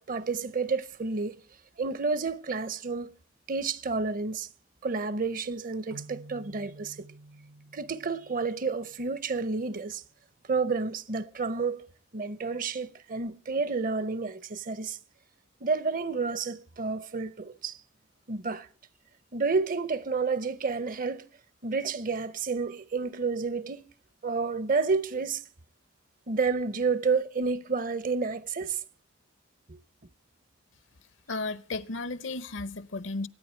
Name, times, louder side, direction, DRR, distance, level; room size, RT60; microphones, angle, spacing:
voice 1, 0.0-1.4 1.8-3.1 3.5-4.5 4.8-7.1 7.7-10.0 10.5-15.0 15.6-17.8 18.3-18.7 19.3-21.3 21.6-23.9 24.2-25.4 26.3-28.8 29.7-29.8, right 4 dB, 45° right, 0.7 m, -30 dB
sound 1, 5.9-9.4, right 2 dB, 70° right, 1.1 m, -50 dB
voice 2, 31.3-33.3, left 3 dB, 65° left, 0.8 m, -34 dB
24.0 x 9.5 x 4.4 m
head